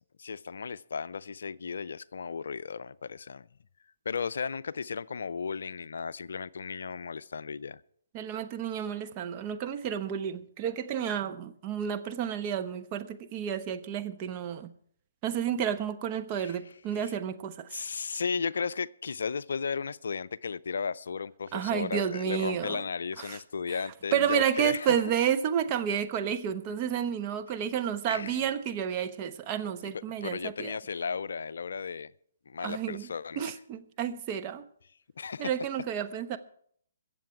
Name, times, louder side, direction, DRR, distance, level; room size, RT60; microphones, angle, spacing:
voice 1, 0.2-3.5 4.1-7.8 16.3-16.6 16.9-17.1 17.7-25.0 28.1-28.4 29.9-32.1 32.5-33.6 35.2-35.5, left 5 dB, 70° left, 0.4 m, -35 dB
voice 2, 8.1-14.7 15.2-17.7 21.5-22.8 23.3-23.4 24.1-30.7 32.6-33.1 33.4-34.6 35.4-36.4, right 9 dB, 30° right, 1.0 m, -31 dB
23.0 x 7.7 x 4.8 m
figure-of-eight pair, 135°, 0 cm